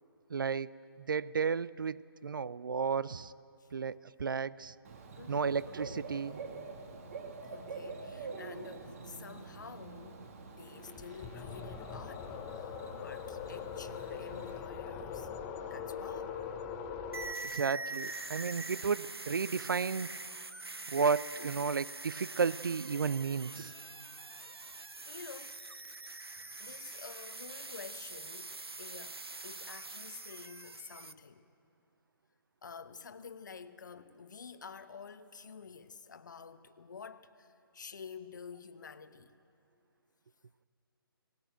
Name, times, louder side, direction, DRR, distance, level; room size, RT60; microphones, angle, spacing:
voice 1, 0.3-0.7 1.1-3.3 3.7-4.7 5.3-6.4 17.4-20.1 20.9-23.7, right 5 dB, 60° right, 0.5 m, -33 dB
Bird / Cricket, 4.8-14.6, right 4 dB, 35° right, 2.0 m, -47 dB
voice 2, 5.2-5.5 7.4-12.8 13.0-15.3 15.6-16.4 25.0-25.6 26.4-31.5 32.6-39.3, left 6 dB, 50° left, 1.0 m, -50 dB
sound 1, 10.6-17.3, left 7 dB, 15° left, 0.9 m, -42 dB
sound 2, 17.1-31.1, right 3 dB, 80° right, 0.9 m, -44 dB
19.5 x 17.0 x 9.1 m
figure-of-eight pair, 145°, 13 cm